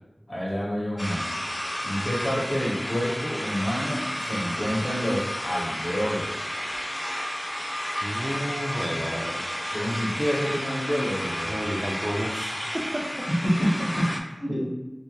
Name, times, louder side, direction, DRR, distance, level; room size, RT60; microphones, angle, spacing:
voice 1, 0.3-1.3 1.8-6.5 9.7-11.6 13.3-14.1 14.4-14.7, equal, 65° left, -5 dB, 0.8 m, -28 dB
sound 1, 1.0-14.2, equal, 25° left, 0.4 m, -32 dB
voice 2, 8.0-9.4 11.4-13.7, equal, 35° right, 0 dB, 0.5 m, -31 dB
2.6 x 2.1 x 3.0 m, 1.0 s
wide cardioid pair, 45°, 0 cm